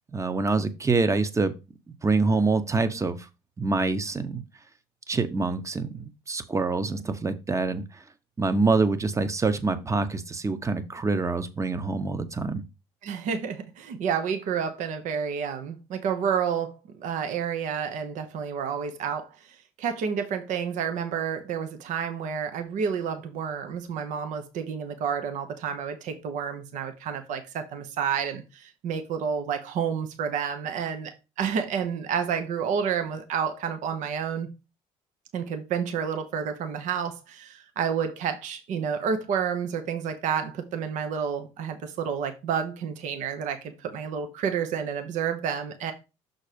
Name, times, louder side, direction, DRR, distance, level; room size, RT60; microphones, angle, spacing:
voice 1, 0.1-1.5 2.0-3.3 3.6-4.4 5.1-8.0 8.4-12.6, right 3 dB, 20° right, 1.0 m, -26 dB
voice 2, 13.0-31.1 31.4-34.5 35.3-45.9, right 7 dB, 70° right, 1.2 m, -30 dB
6.2 x 4.1 x 5.2 m
supercardioid pair, 80°, 13 cm